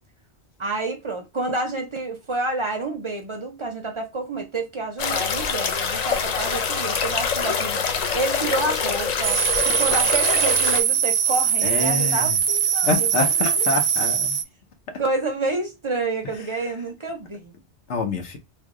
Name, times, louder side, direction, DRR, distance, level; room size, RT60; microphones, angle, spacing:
voice 1, 0.6-13.5 15.0-17.5, right 2 dB, 40° right, 0.4 m, -29 dB
sound 1, 5.0-10.8, left 6 dB, 55° left, 0.5 m, -25 dB
sound 2, 9.2-14.4, right 8 dB, 90° right, 0.9 m, -21 dB
voice 2, 11.6-12.4 12.8-14.4 14.9-15.0 17.9-18.4, left 3 dB, 85° left, 1.1 m, -26 dB
3.3 x 2.1 x 3.5 m
omnidirectional pair, 1.1 m